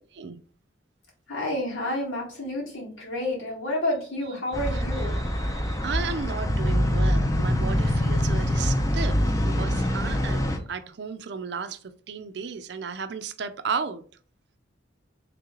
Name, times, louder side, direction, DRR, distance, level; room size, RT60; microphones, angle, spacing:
voice 1, 1.3-5.1, left 1 dB, 90° left, 1.9 m, -30 dB
sound 1, 4.5-10.6, equal, 15° left, 0.5 m, -24 dB
voice 2, 4.7-14.0, right 5 dB, 60° right, 0.4 m, -34 dB
3.2 x 3.0 x 3.7 m
head